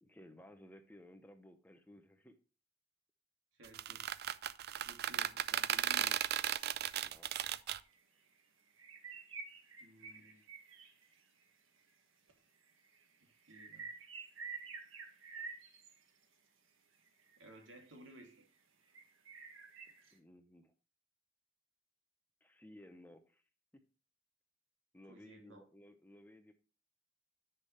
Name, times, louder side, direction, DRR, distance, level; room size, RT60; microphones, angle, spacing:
voice 1, 0.0-2.3 7.0-7.3 20.1-20.7 22.4-23.4 24.9-26.5, left 1 dB, 10° left, 7 dB, 0.8 m, -58 dB
voice 2, 3.5-4.1 4.8-6.2 9.8-10.4 13.2-13.9 17.4-18.4 25.1-25.7, equal, 70° right, 2 dB, 2.7 m, -57 dB
sound 1, 3.6-7.8, right 11 dB, 55° right, 0.4 m, -35 dB
sound 2, 6.6-6.7 7.1-7.2 7.8-8.0 8.3-8.4 8.7-11.4 12.3-12.4 12.6-16.2 16.9-18.4 18.9-20.2, right 4 dB, 85° right, 1.7 m, -50 dB
10.0 x 5.9 x 3.2 m, 0.36 s
head